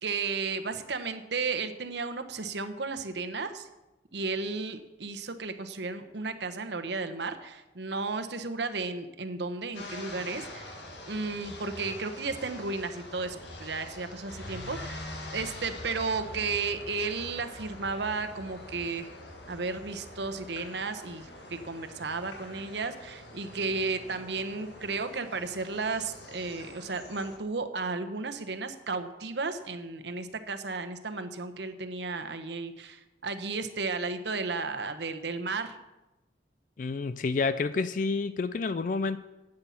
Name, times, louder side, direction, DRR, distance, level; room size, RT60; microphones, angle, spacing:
voice 1, 0.0-3.7 4.1-10.7 11.1-15.0 15.3-19.1 19.5-35.8, right 4 dB, 75° right, 8 dB, 1.0 m, -34 dB
sound 1, 9.7-27.4, left 1 dB, 75° left, 1.9 m, -44 dB
voice 2, 36.8-39.2, left 4 dB, 45° left, 14 dB, 0.3 m, -29 dB
11.5 x 8.8 x 5.8 m, 1.0 s
head